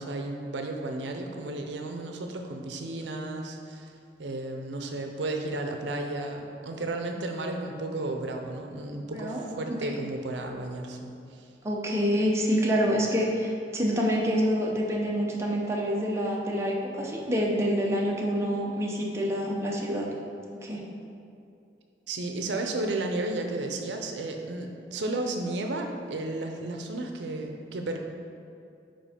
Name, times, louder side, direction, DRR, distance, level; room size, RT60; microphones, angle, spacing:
voice 1, 0.0-3.9 4.2-11.5 22.1-28.0, right 2 dB, 80° right, 3 dB, 0.6 m, -33 dB
voice 2, 11.6-20.1 20.6-20.8, equal, 15° right, -3 dB, 0.7 m, -27 dB
5.2 x 4.5 x 5.0 m, 2.6 s
head